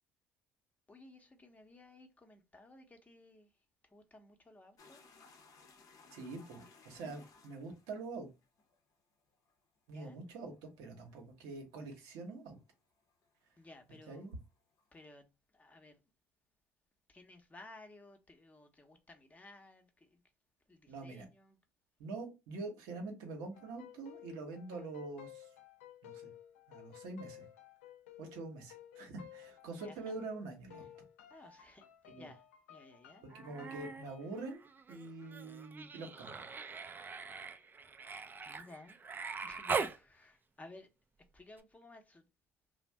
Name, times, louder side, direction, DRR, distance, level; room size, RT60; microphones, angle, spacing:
voice 1, 0.9-3.5 3.8-5.0 9.9-10.2 13.6-14.3 14.9-16.0 17.1-20.2 20.7-21.6 29.8-30.1 31.3-32.4 32.7-33.2 38.5-39.0 39.4-40.9 41.3-42.3, left 2 dB, 20° left, 0.8 m, -57 dB
sound 1, 4.8-13.3 13.6-15.0, left 4 dB, 55° left, 0.7 m, -62 dB
voice 2, 6.1-8.3 9.9-12.6 14.1-14.4 20.9-21.3 22.0-25.5 26.0-26.3 26.7-27.5 28.2-30.9 32.1-32.3 33.2-36.5, right 3 dB, 75° right, 0.8 m, -45 dB
sound 2, 23.5-34.5, left 11 dB, 85° left, 0.4 m, -55 dB
Human voice, 33.3-34.1 34.4-40.0 41.6-41.7, right 5 dB, 25° right, 0.4 m, -41 dB
2.5 x 2.1 x 3.2 m
hypercardioid pair, 65°, 7 cm